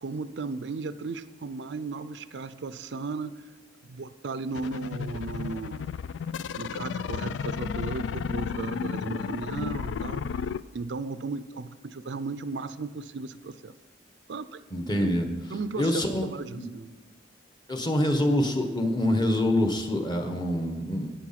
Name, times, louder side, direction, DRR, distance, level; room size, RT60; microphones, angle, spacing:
voice 1, 0.0-3.3 3.8-5.9 6.6-10.4 10.7-13.7 14.3-14.6 15.0-16.9, right 4 dB, 70° right, 13 dB, 0.5 m, -35 dB
sound 1, 4.5-10.6, left 6 dB, 90° left, 0.3 m, -33 dB
voice 2, 14.7-15.3 15.8-16.2 16.6-16.7 17.7-21.1, left 1 dB, 25° left, 5 dB, 1.2 m, -25 dB
11.0 x 8.6 x 5.8 m, 1.3 s
head